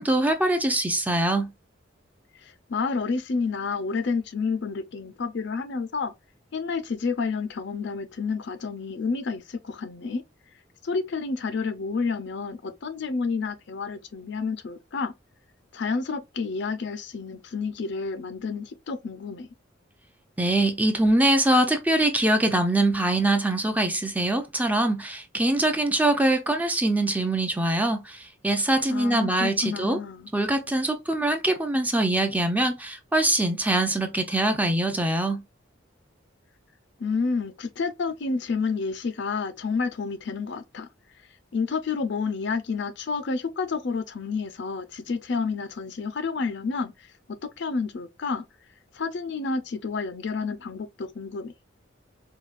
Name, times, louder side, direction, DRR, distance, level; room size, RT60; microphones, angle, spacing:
voice 1, 0.0-1.5 20.4-30.0 30.3-35.4, right 1 dB, 10° right, 0.5 m, -23 dB
voice 2, 2.4-6.1 6.5-10.2 10.8-15.1 15.7-19.5 28.9-30.3 37.0-40.9 41.5-46.9 47.4-48.4 48.9-51.5, left 4 dB, 60° left, 0.5 m, -29 dB
4.8 x 2.3 x 2.4 m
head